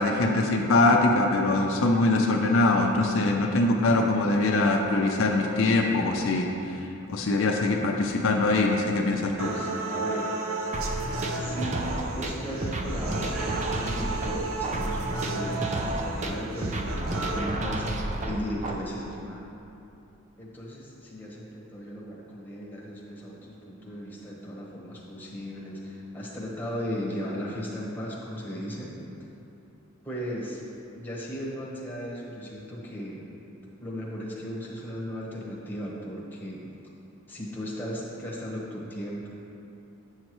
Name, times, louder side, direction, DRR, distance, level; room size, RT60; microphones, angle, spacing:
voice 1, 0.0-6.8 7.1-9.5, left 2 dB, 65° left, 1 dB, 0.5 m, -23 dB
voice 2, 9.4-10.4 11.4-17.8 18.2-19.6 20.4-29.0 30.0-30.6 30.9-33.3 33.8-36.7 37.3-39.3, equal, 10° left, -5 dB, 1.1 m, -36 dB
sound 1, 9.4-17.4, right 3 dB, 70° right, 0.6 m, -34 dB
sound 2, 10.7-18.7, right 1 dB, 35° right, 0.5 m, -31 dB
8.0 x 6.5 x 3.1 m, 2.8 s
head